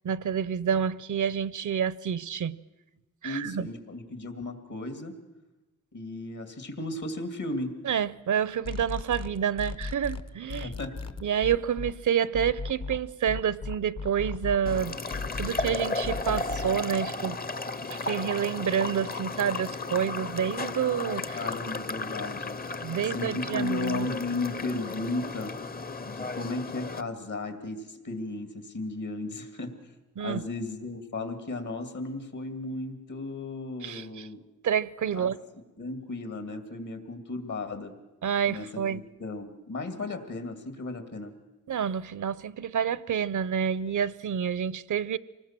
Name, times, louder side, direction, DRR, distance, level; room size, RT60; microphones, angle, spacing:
voice 1, 0.0-2.6 3.2-3.7 7.8-10.7 11.2-17.4 18.0-21.5 22.8-24.1 30.2-30.4 33.8-34.3 34.6-35.4 38.2-39.0 41.7-45.2, right 8 dB, 75° right, 0.7 m, -28 dB
voice 2, 3.2-5.1 5.9-7.7 10.6-10.9 21.3-22.6 23.0-25.5 26.1-29.7 30.2-34.4 35.1-35.3 35.8-37.9 38.5-41.3, left 2 dB, 70° left, 2.6 m, -35 dB
sound 1, 8.7-11.9 12.3-16.8, left 4 dB, 55° left, 1.1 m, -35 dB
sound 2, 14.7-27.0, left 3 dB, 30° left, 0.7 m, -34 dB
25.5 x 19.5 x 7.5 m
wide cardioid pair, 90°, 31 cm